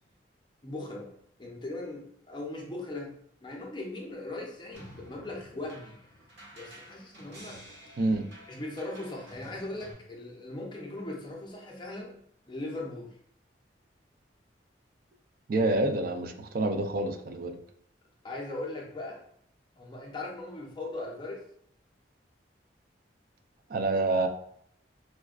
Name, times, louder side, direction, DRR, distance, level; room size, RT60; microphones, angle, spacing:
voice 1, 0.6-1.1 1.4-3.1 3.4-6.0 6.5-7.6 8.5-12.2 12.5-13.1 18.2-19.2 19.8-21.5, left 2 dB, 25° left, -1 dB, 0.6 m, -39 dB
sound 1, 4.7-9.9, equal, 75° right, 1.3 m, -51 dB
voice 2, 8.0-8.3 15.5-17.6 23.7-24.3, right 2 dB, 50° right, 6 dB, 0.4 m, -27 dB
4.2 x 2.1 x 2.4 m, 0.67 s
head